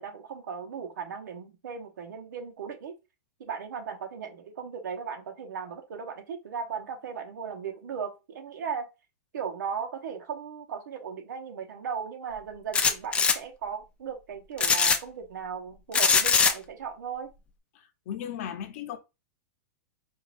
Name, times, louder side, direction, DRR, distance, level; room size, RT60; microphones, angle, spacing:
voice 1, 0.0-2.9 3.4-8.9 9.3-17.3, right 6 dB, 80° right, 1.1 m, -37 dB
sound 1, 12.7-13.4 14.6-15.0 15.9-16.5, left 5 dB, 10° left, 0.4 m, -21 dB
voice 2, 17.7-19.0, left 9 dB, 50° left, 0.8 m, -36 dB
4.7 x 2.6 x 2.5 m
hypercardioid pair, 150°, 10 cm